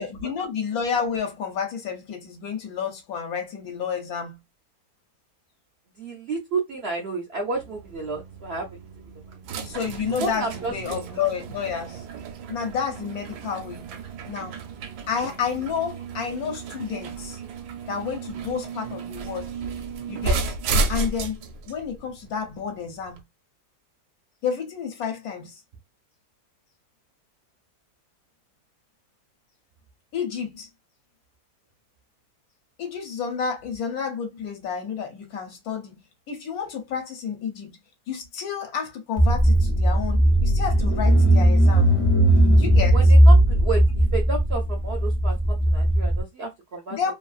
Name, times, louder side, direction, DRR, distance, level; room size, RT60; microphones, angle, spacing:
voice 1, 0.0-4.4 9.6-12.0 12.5-13.9 14.3-14.6 15.1-17.4 17.9-19.5 20.1-20.5 20.9-21.4 21.7-23.2 24.4-25.6 30.1-30.7 32.8-36.0 36.3-37.7 38.1-41.9 42.6-43.0 46.9-47.1, left 6 dB, 70° left, 1.2 m, -30 dB
voice 2, 6.0-8.8 10.1-11.1 42.9-43.8 44.1-47.0, right 3 dB, 65° right, 0.6 m, -31 dB
sound 1, 7.5-23.2, right 3 dB, 80° right, 1.1 m, -33 dB
Car / Engine, 39.2-46.2, right 1 dB, 45° left, 0.4 m, -17 dB
2.9 x 2.4 x 2.3 m
omnidirectional pair, 1.7 m